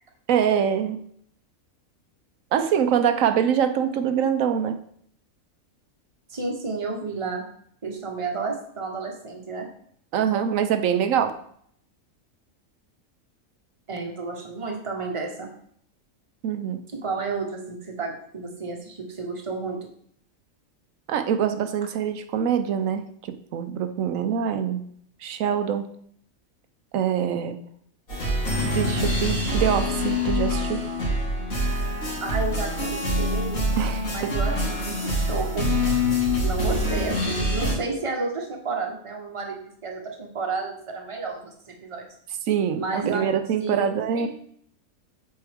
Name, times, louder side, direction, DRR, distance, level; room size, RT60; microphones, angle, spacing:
voice 1, 0.3-1.0 2.5-4.7 10.1-11.3 16.4-16.8 21.1-23.1 23.5-24.8 25.2-25.9 26.9-27.6 28.6-30.8 33.8-34.1 42.5-44.3, right 8 dB, 75° right, 9 dB, 1.0 m, -24 dB
voice 2, 6.3-7.4 7.8-9.7 13.9-15.5 16.9-19.8 32.2-33.7 34.1-35.7 36.4-42.1 42.7-43.3 43.6-44.3, right 4 dB, 25° right, 1 dB, 1.1 m, -31 dB
sound 1, 28.1-37.7, left 1 dB, 85° left, 2.4 m, -25 dB
7.7 x 4.6 x 3.5 m, 0.65 s
omnidirectional pair, 1.4 m